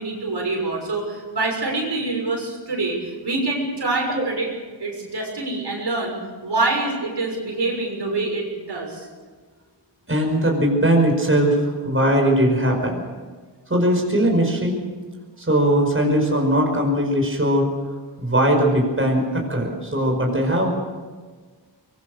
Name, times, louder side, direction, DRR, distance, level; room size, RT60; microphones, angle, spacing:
voice 1, 0.0-4.5 4.8-6.2 6.4-9.1, right 2 dB, 65° right, 0 dB, 6.3 m, -25 dB
voice 2, 10.1-13.1 13.7-14.8 15.4-17.7 18.2-20.7, right 1 dB, 30° right, 1 dB, 5.5 m, -20 dB
24.0 x 22.0 x 6.7 m, 1.4 s
wide cardioid pair, 80°, 43 cm